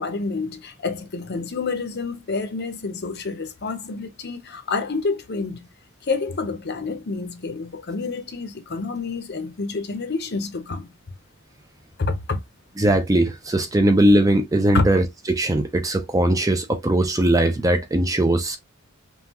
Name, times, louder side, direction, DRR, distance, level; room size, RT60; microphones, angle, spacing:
voice 1, 0.0-5.6 6.0-10.9 12.0-12.4 14.7-14.9, left 4 dB, 45° left, 0.7 m, -28 dB
voice 2, 12.8-18.6, right 1 dB, 15° right, 0.4 m, -20 dB
5.5 x 2.3 x 2.9 m
head